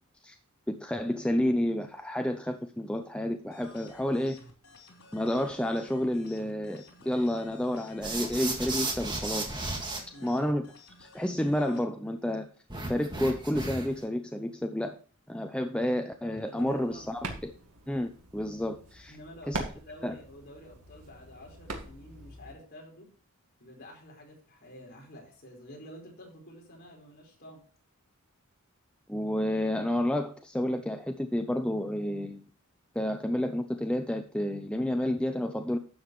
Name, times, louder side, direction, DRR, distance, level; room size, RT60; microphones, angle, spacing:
voice 1, 0.7-4.4 5.1-9.7 10.2-10.6 11.0-12.5 12.9-15.0 15.3-17.5 17.9-19.2 19.5-19.6 20.0-20.2 29.1-32.4 32.9-35.8, left 1 dB, 5° left, 6 dB, 0.5 m, -30 dB
sound 1, 3.5-11.8, left 3 dB, 85° left, 3.5 m, -54 dB
sound 2, 8.0-10.0 12.7-14.0, right 2 dB, 20° right, 1.9 m, -34 dB
voice 2, 10.1-10.4 16.5-17.1 19.1-23.1 23.6-27.6, left 1 dB, 45° left, -1 dB, 4.6 m, -49 dB
sound 3, 16.6-22.5, right 2 dB, 85° right, 2.0 m, -42 dB
11.5 x 7.7 x 3.1 m, 0.40 s
head